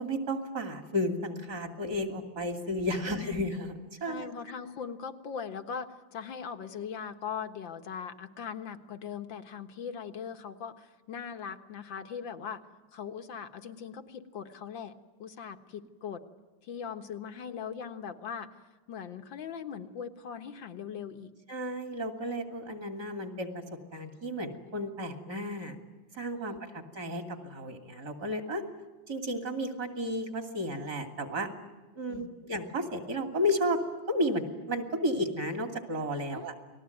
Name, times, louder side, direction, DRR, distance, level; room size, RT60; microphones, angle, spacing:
voice 1, 0.0-4.3 21.5-23.6 23.9-25.7 26.1-28.6 29.1-31.5 32.0-33.8 34.1-36.5, equal, 55° right, 5 dB, 3.2 m, -33 dB
voice 2, 3.1-3.5 4.0-12.6 12.9-16.2 16.6-18.5 18.9-21.3 26.5-26.6 32.1-32.5 36.3-36.5, left 7 dB, 80° left, 7 dB, 2.2 m, -40 dB
29.5 x 20.0 x 9.3 m, 1.3 s
omnidirectional pair, 2.1 m